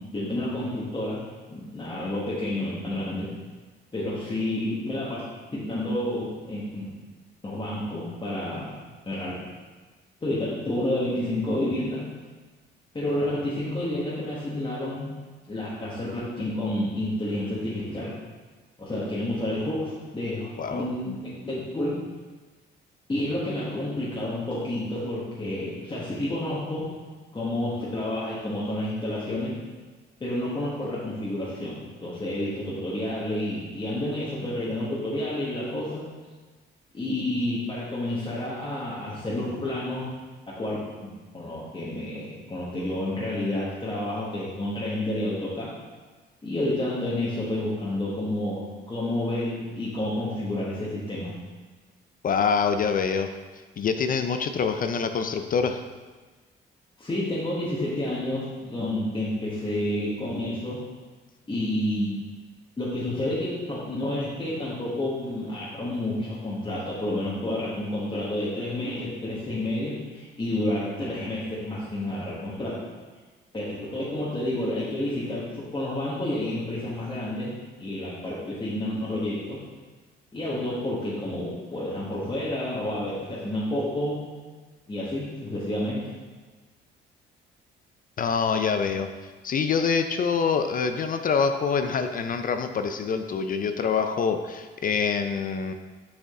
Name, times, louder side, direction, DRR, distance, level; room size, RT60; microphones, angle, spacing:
voice 1, 0.1-1.2 1.5-3.3 3.9-5.2 5.5-6.9 7.4-8.7 9.1-9.4 10.2-12.0 12.9-15.1 15.5-18.1 18.8-22.0 23.1-26.9 27.3-29.5 30.2-36.1 36.9-40.1 40.6-45.7 46.4-51.3 57.0-60.8 61.5-62.2 62.8-72.8 73.5-77.5 77.8-79.6 80.3-84.3 84.9-86.1, left 1 dB, 25° left, -8 dB, 1.5 m, -30 dB
voice 2, 52.2-53.3 53.8-55.8 88.2-89.1 89.4-95.7, left 6 dB, 45° left, 7 dB, 0.4 m, -25 dB
6.7 x 5.0 x 3.7 m, 1.3 s
cardioid pair, 90°, 20 cm